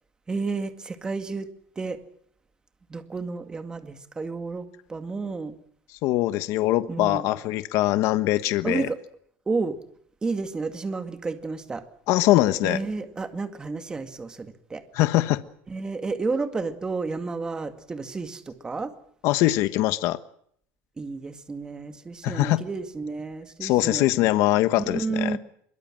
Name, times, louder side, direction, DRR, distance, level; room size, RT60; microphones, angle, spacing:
voice 1, 0.3-1.5 1.8-2.0 2.9-5.6 6.9-7.3 8.6-9.0 9.5-9.8 10.2-11.8 12.6-14.8 15.7-18.9 21.0-24.1 24.8-25.4, right 4 dB, 15° right, 8 dB, 2.1 m, -31 dB
voice 2, 6.0-8.9 12.1-12.8 14.9-15.4 19.2-20.2 22.2-22.6 23.6-25.4, left 16 dB, 55° left, 12 dB, 1.3 m, -22 dB
24.5 x 22.5 x 7.6 m, 0.66 s
cardioid pair, 170°, 6 cm